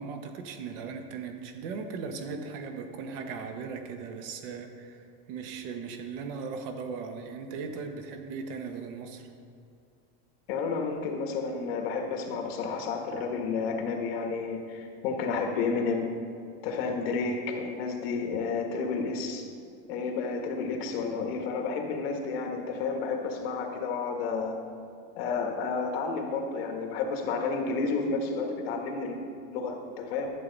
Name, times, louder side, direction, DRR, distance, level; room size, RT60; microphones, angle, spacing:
voice 1, 0.0-9.3, right 5 dB, 65° right, 6 dB, 1.1 m, -38 dB
voice 2, 10.5-16.1 16.6-19.5 19.9-24.6 25.1-29.2 29.5-30.3, left 4 dB, 70° left, 3 dB, 1.5 m, -31 dB
11.5 x 7.5 x 4.0 m, 2.5 s
supercardioid pair, 160°, 31 cm